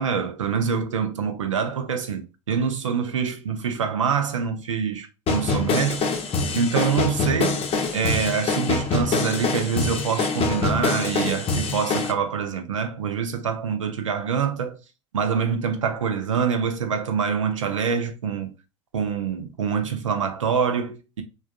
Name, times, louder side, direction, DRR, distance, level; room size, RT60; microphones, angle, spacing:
voice 1, 0.0-6.1 6.5-7.6 7.9-14.8 15.1-18.5 18.9-21.2, right 6 dB, 85° right, 0.5 m, -25 dB
sound 1, 5.3-12.1, left 4 dB, 40° left, 0.6 m, -25 dB
3.3 x 2.3 x 2.3 m
hypercardioid pair, 70°, 16 cm